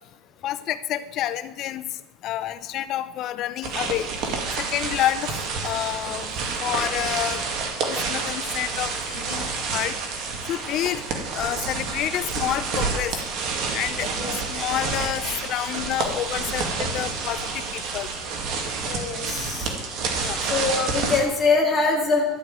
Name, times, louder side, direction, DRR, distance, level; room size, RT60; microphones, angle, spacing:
voice 1, 0.4-1.8 2.2-4.1 4.6-5.3 5.6-6.3 6.6-7.4 7.9-10.0 10.5-11.0 11.3-13.2 13.7-18.1 20.2-20.4, left 12 dB, 40° left, 13 dB, 0.6 m, -28 dB
sound 1, 3.6-21.2, right 4 dB, 45° right, 2.2 m, -29 dB
voice 2, 18.8-19.7 20.4-22.3, left 3 dB, 5° left, -5 dB, 2.3 m, -23 dB
12.5 x 6.3 x 9.1 m, 1.1 s
cardioid pair, 160°, 0 cm